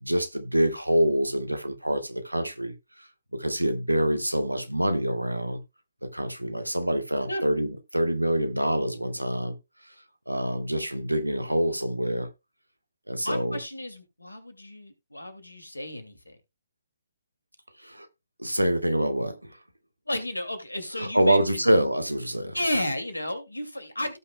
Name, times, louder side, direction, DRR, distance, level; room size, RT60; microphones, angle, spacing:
voice 1, 0.0-5.6 6.0-9.6 9.8-9.9 10.3-12.3 13.1-13.6 17.8-18.1 18.4-19.6 20.9-22.6, right 1 dB, 90° right, 1.4 m, -26 dB
voice 2, 13.2-16.4 20.1-21.6 22.5-24.2, left 1 dB, 85° left, 2.3 m, -33 dB
17.0 x 5.8 x 2.2 m
figure-of-eight pair, 130°, 0 cm